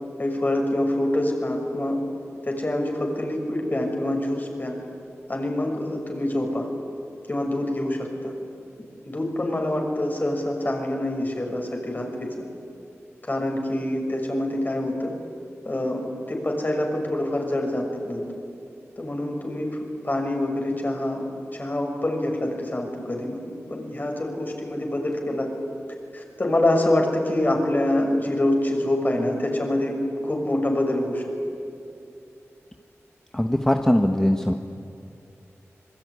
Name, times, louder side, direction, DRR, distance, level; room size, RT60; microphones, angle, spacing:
voice 1, 0.2-2.0 2.4-4.7 5.3-6.7 7.3-8.3 9.0-12.1 13.2-15.1 15.6-16.0 16.3-18.2 19.0-19.7 20.0-23.4 23.7-25.5 26.1-31.2, left 1 dB, 35° left, 2 dB, 6.3 m, -25 dB
voice 2, 33.3-34.5, left 1 dB, 10° left, 5 dB, 1.4 m, -21 dB
26.0 x 21.5 x 9.8 m, 2.6 s
wide cardioid pair, 60°, 5 cm